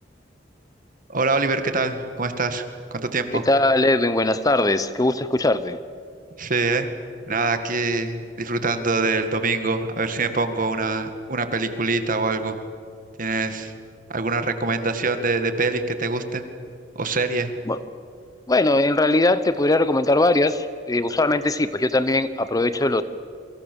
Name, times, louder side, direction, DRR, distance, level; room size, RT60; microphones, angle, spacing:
voice 1, 1.1-2.6 2.9-3.4 6.4-6.9 7.3-12.6 13.2-13.7 14.1-16.4 17.0-17.5, right 3 dB, 50° right, 8 dB, 1.9 m, -24 dB
voice 2, 3.3-5.8 17.7-17.8 18.5-23.0, left 2 dB, 20° left, 13 dB, 0.7 m, -20 dB
29.0 x 24.5 x 7.0 m, 2.3 s
head